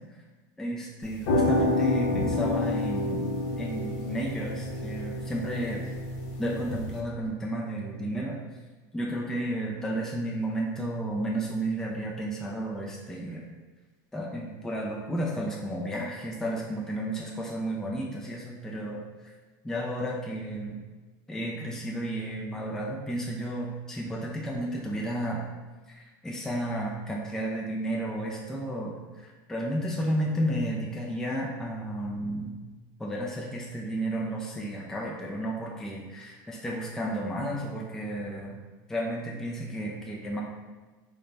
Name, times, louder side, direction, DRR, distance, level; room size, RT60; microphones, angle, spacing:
voice 1, 0.6-3.3 3.6-5.8 6.4-8.4 8.9-13.4 14.1-19.3 19.6-20.8 21.3-25.4 25.9-32.5 33.0-38.5 38.9-40.4, right 1 dB, 5° left, -3 dB, 0.4 m, -32 dB
sound 1, 1.0-7.0, left 2 dB, 65° left, 0.6 m, -29 dB
3.8 x 2.2 x 3.2 m, 1.3 s
supercardioid pair, 120°, 10 cm